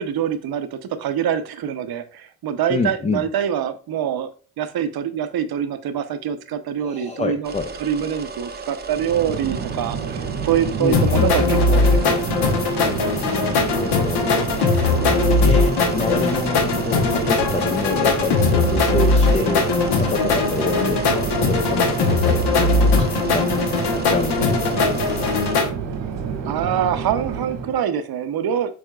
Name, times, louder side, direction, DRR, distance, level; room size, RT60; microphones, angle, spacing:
voice 1, 0.0-4.3 4.6-7.5 7.8-12.3 26.4-28.8, right 9 dB, 60° right, 10 dB, 0.7 m, -25 dB
voice 2, 2.7-3.3 6.8-7.7 10.8-11.3 13.3-14.6 15.4-22.5 22.8-23.5 23.9-25.3, left 4 dB, 20° left, 7 dB, 0.3 m, -28 dB
sound 1, 7.4-25.6, right 5 dB, 25° right, 0.6 m, -35 dB
Chatter / Fixed-wing aircraft airplane, 8.9-27.8, right 6 dB, 85° right, 1.6 m, -29 dB
sound 2, 10.9-25.7, left 3 dB, 65° left, 1.0 m, -20 dB
6.2 x 3.5 x 2.3 m, 0.38 s
supercardioid pair, 65°, 43 cm